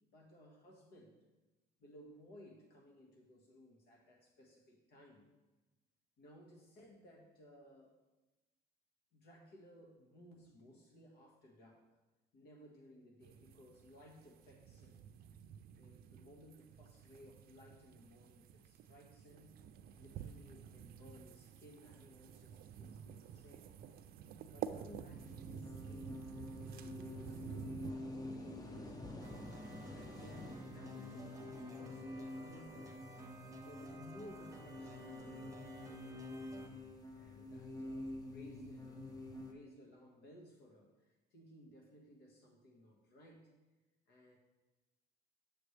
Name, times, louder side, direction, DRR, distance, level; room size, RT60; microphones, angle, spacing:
voice 1, 0.1-1.2 1.8-5.3 6.2-8.0 9.1-11.8 12.3-15.0 15.8-19.5 19.9-23.7 24.5-26.3 26.7-29.4 29.9-33.0 33.6-35.6 37.1-39.1 39.4-43.5 44.1-44.4, left 1 dB, 75° left, 1 dB, 1.7 m, -59 dB
sound 1, 13.2-27.9, right 9 dB, 65° right, 0.5 m, -50 dB
sound 2, 25.1-39.5, left 2 dB, 20° left, 0.8 m, -48 dB
sound 3, 29.2-36.7, right 3 dB, 20° right, 0.9 m, -56 dB
8.1 x 6.6 x 3.3 m, 1.1 s
cardioid pair, 110°, 17 cm